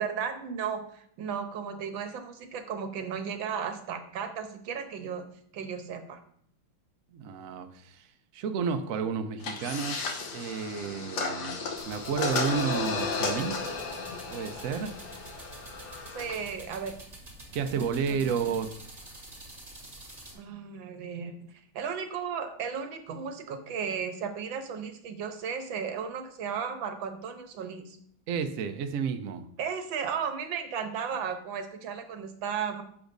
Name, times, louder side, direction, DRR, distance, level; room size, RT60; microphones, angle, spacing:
voice 1, 0.0-5.2 5.5-6.2 16.1-16.9 17.7-18.4 20.3-21.3 21.7-28.0 29.6-32.8, right 7 dB, 80° right, 7 dB, 1.6 m, -35 dB
voice 2, 7.1-8.0 8.3-10.1 10.3-11.6 11.9-13.6 14.3-14.9 17.5-18.7 28.3-29.4, right 6 dB, 65° right, 7 dB, 0.8 m, -31 dB
sound 1, 9.4-16.5, left 4 dB, 65° left, 1.5 m, -34 dB
sound 2, 11.8-20.3, right 1 dB, 20° right, 1.8 m, -48 dB
10.0 x 7.1 x 2.6 m, 0.66 s
omnidirectional pair, 2.1 m